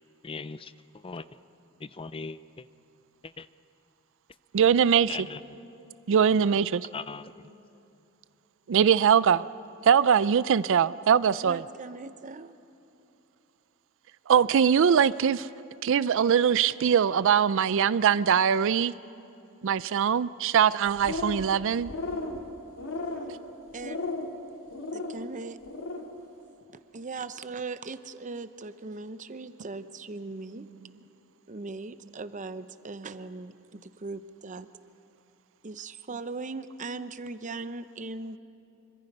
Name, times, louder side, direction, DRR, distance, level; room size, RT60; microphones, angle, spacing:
voice 1, 0.2-0.7 1.0-1.3 1.8-2.7 3.2-3.5 5.1-5.6 6.9-7.3, left 4 dB, 25° left, 15 dB, 0.5 m, -39 dB
voice 2, 4.5-5.3 6.1-6.9 8.7-9.4 9.8-11.6 14.3-15.5 15.8-18.9 19.6-21.9, right 7 dB, 65° right, 17 dB, 0.4 m, -22 dB
voice 3, 11.3-12.5 23.7-24.0 24.9-25.6 26.7-30.7 31.5-34.7 35.6-38.4, right 3 dB, 35° right, 12 dB, 0.7 m, -39 dB
sound 1, 20.9-21.5 21.8-22.4 22.8-23.3 23.8-24.3 24.7-25.2 25.6-26.0, left 2 dB, 85° left, 2.5 m, -34 dB
26.0 x 24.5 x 5.4 m, 2.8 s
head